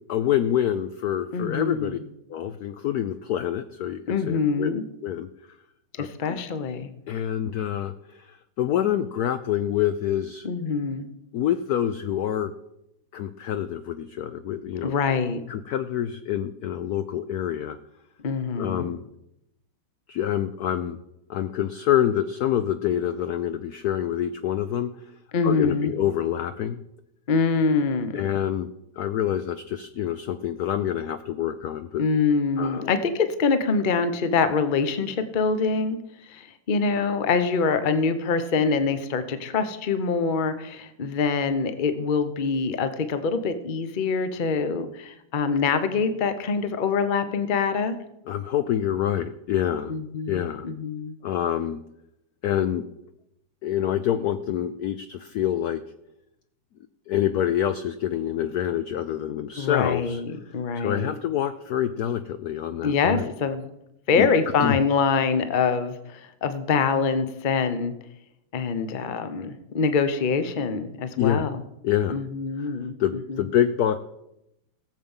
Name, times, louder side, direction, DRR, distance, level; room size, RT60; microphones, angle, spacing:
voice 1, 0.1-2.0 2.3-5.3 6.0-6.4 7.1-10.5 11.3-12.5 13.1-14.9 15.5-17.8 18.6-19.0 20.1-21.0 21.3-24.9 25.4-26.8 28.1-28.7 29.0-32.0 32.6-32.9 48.3-49.9 50.3-50.7 51.2-51.8 52.4-52.8 53.6-55.8 57.1-60.2 60.7-63.3 64.1-64.3 64.6-64.8 71.2-71.5 71.8-72.2 72.6-74.0, left 10 dB, 75° left, 11 dB, 0.8 m, -26 dB
voice 2, 1.3-2.0 4.1-4.8 6.0-6.9 10.4-11.0 14.8-15.4 18.2-18.9 25.3-25.9 27.3-28.2 32.0-36.0 36.3-48.0 49.9-51.2 59.6-61.1 62.8-63.6 64.1-67.9 68.5-71.6 72.1-72.9 73.3-73.5, left 5 dB, 45° left, 10 dB, 0.6 m, -25 dB
18.5 x 7.5 x 5.5 m, 0.86 s
omnidirectional pair, 2.2 m